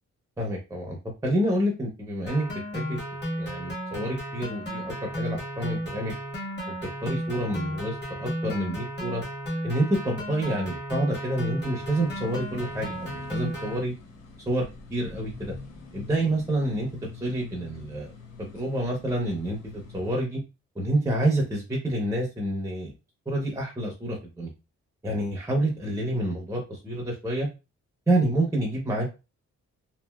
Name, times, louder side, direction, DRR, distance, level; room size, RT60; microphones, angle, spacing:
voice 1, 0.4-3.0 3.4-6.1 6.8-9.2 9.6-13.9 14.5-15.5 15.9-16.9 17.1-18.1 18.4-20.4 20.8-22.9 23.3-24.5 25.0-27.5 28.1-29.1, right 1 dB, 10° right, -1 dB, 0.6 m, -28 dB
sound 1, 2.3-13.8, equal, 35° left, 1.3 m, -34 dB
sound 2, 11.8-20.2, left 3 dB, 65° left, 1.0 m, -45 dB
3.0 x 2.6 x 2.2 m, 0.29 s
cardioid pair, 125°, 29 cm